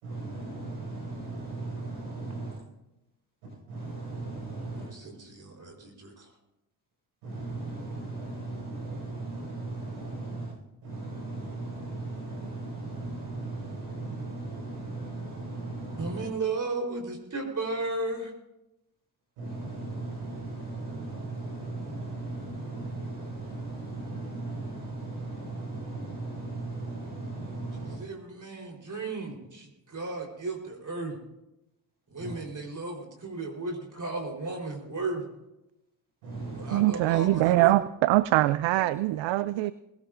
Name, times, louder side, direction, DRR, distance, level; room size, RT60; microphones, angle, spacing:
voice 1, 0.0-2.6 3.4-4.9 7.2-10.5 10.8-16.3 19.4-28.0 32.2-32.4 36.2-36.8, right 2 dB, 85° right, -5 dB, 5.4 m, -37 dB
voice 2, 4.8-6.3 16.0-18.3 28.0-31.2 32.1-35.2 36.5-37.7, right 3 dB, 40° right, 1 dB, 3.9 m, -34 dB
voice 3, 36.7-39.7, right 17 dB, 65° right, 16 dB, 0.6 m, -23 dB
20.0 x 17.5 x 2.5 m, 0.92 s
hypercardioid pair, 55°, 48 cm